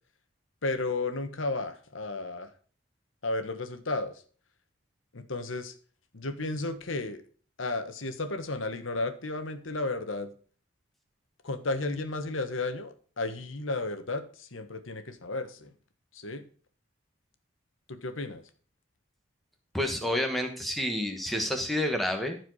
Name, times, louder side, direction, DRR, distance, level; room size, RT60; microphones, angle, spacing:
voice 1, 0.6-2.5 3.2-4.1 5.1-5.7 6.1-7.2 7.6-10.3 11.4-15.7 16.1-16.4 17.9-18.4, left 2 dB, 85° left, 9 dB, 1.4 m, -33 dB
voice 2, 19.7-22.4, left 1 dB, ahead, 4 dB, 1.5 m, -29 dB
14.5 x 4.9 x 4.8 m, 0.42 s
head